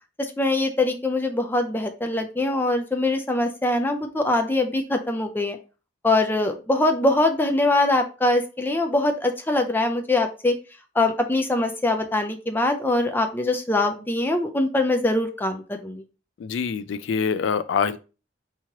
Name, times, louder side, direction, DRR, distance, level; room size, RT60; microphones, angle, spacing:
voice 1, 0.2-5.6 6.0-10.6 11.0-16.0, left 2 dB, 10° left, 0.5 m, -23 dB
voice 2, 16.4-18.0, left 6 dB, 75° left, 0.3 m, -25 dB
4.7 x 3.0 x 2.9 m
head